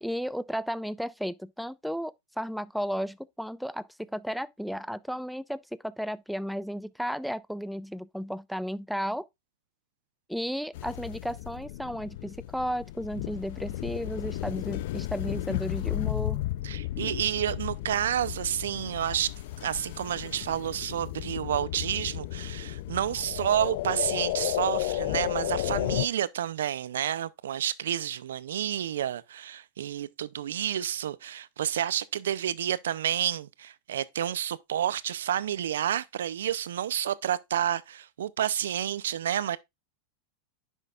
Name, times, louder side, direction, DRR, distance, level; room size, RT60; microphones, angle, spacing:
voice 1, 0.0-9.2 10.3-16.4, equal, ahead, 0.5 m, -34 dB
sound 1, 10.7-26.1, left 16 dB, 70° left, 0.4 m, -33 dB
voice 2, 16.6-19.3 19.6-39.6, right 10 dB, 85° right, 0.5 m, -30 dB
10.0 x 6.3 x 2.4 m
hypercardioid pair, 110°, 0 cm